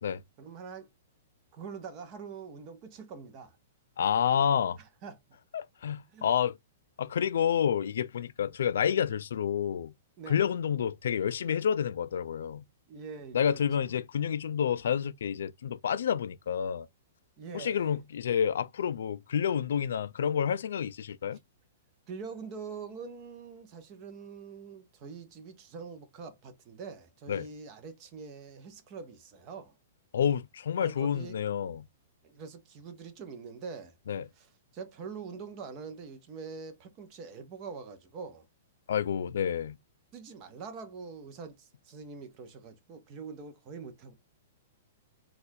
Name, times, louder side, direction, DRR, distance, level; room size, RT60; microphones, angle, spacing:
voice 1, 0.4-0.9 1.5-3.6 5.0-5.2 6.1-6.3 10.2-10.4 12.9-13.9 17.4-17.9 22.1-29.7 30.8-31.4 32.2-33.9 34.3-38.5 40.1-44.1, right 5 dB, 25° right, 0.7 m, -44 dB
voice 2, 4.0-4.8 5.5-6.6 7.0-9.9 10.3-12.6 13.3-16.9 17.5-21.4 27.3-27.5 30.1-31.9 34.1-34.3 38.9-39.8, left 8 dB, 75° left, 0.3 m, -29 dB
4.0 x 2.3 x 2.6 m
hypercardioid pair, 170°, 0 cm